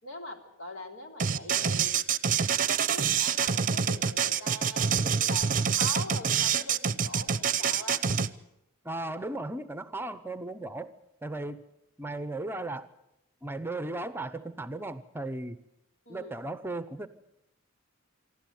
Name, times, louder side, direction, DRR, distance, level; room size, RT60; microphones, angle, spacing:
voice 1, 0.0-1.9 2.9-8.0 16.0-16.4, left 1 dB, 65° left, 4 dB, 3.2 m, -42 dB
sound 1, 1.2-8.3, right 7 dB, 40° right, 0.7 m, -26 dB
voice 2, 8.8-10.9 11.2-11.6 12.0-12.9 13.4-15.6 16.1-17.1, right 2 dB, 10° right, 13 dB, 0.8 m, -36 dB
26.5 x 12.5 x 9.5 m, 0.85 s
head